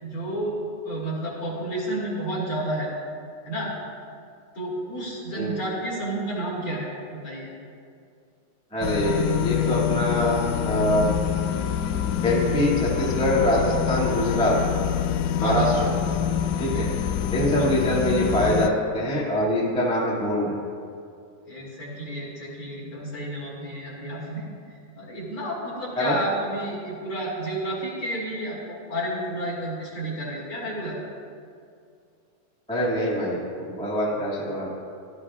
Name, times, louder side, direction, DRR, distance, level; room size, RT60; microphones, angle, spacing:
voice 1, 0.0-2.9 3.4-3.7 4.6-7.5 15.4-15.7 16.6-16.9 17.6-17.7 21.5-31.0, right 1 dB, 40° left, -6 dB, 3.4 m, -31 dB
voice 2, 8.7-11.1 12.2-14.6 15.4-15.9 16.6-16.9 17.3-20.5 26.0-26.1 32.7-34.7, equal, ahead, -8 dB, 1.5 m, -24 dB
sound 1, 8.8-18.7, left 9 dB, 85° left, 1.7 m, -26 dB
16.5 x 13.0 x 2.5 m, 2.4 s
omnidirectional pair, 3.9 m